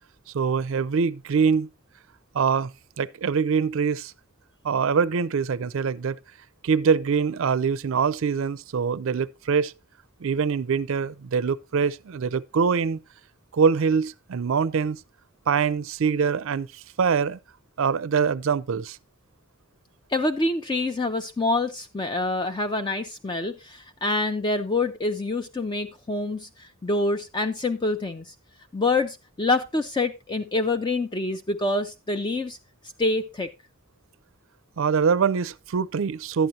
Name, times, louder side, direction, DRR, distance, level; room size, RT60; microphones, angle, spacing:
voice 1, 0.3-1.7 2.3-2.7 3.0-4.1 4.6-6.2 6.6-9.7 10.2-13.0 13.5-15.0 15.5-17.4 17.8-19.0 34.8-36.5, right 6 dB, 65° right, 0.4 m, -24 dB
voice 2, 20.1-28.3 28.7-32.6 33.0-33.5, left 2 dB, 20° left, 0.4 m, -26 dB
11.0 x 9.0 x 2.7 m
head